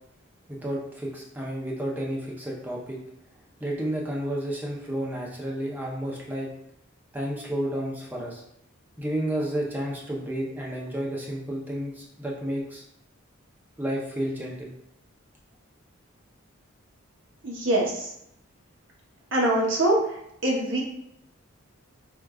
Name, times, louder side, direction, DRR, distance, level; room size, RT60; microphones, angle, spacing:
voice 1, 0.5-3.0 3.6-6.5 7.1-8.4 9.0-12.8 13.8-14.7, right 1 dB, 10° right, -2 dB, 0.5 m, -31 dB
voice 2, 17.4-18.1 19.3-20.0 20.4-20.8, right 1 dB, 60° right, -3 dB, 0.9 m, -23 dB
4.7 x 2.2 x 2.3 m, 0.79 s
head